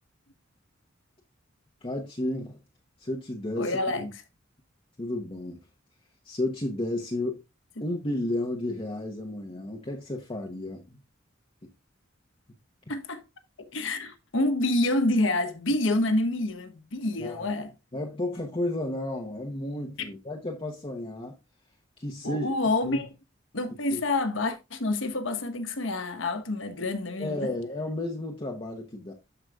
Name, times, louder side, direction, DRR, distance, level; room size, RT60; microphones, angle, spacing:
voice 1, 1.8-2.6 3.0-4.1 5.0-5.6 6.2-7.4 7.8-11.0 17.2-17.5 17.9-21.3 22.0-22.5 22.8-23.0 23.9-24.0 27.2-29.1, left 1 dB, 30° left, 1.1 m, -32 dB
voice 2, 3.6-4.1 7.8-7.9 12.9-13.2 13.6-17.7 20.0-20.1 22.2-23.1 23.5-27.5, left 2 dB, 75° left, 1.1 m, -28 dB
12.5 x 5.3 x 2.4 m
head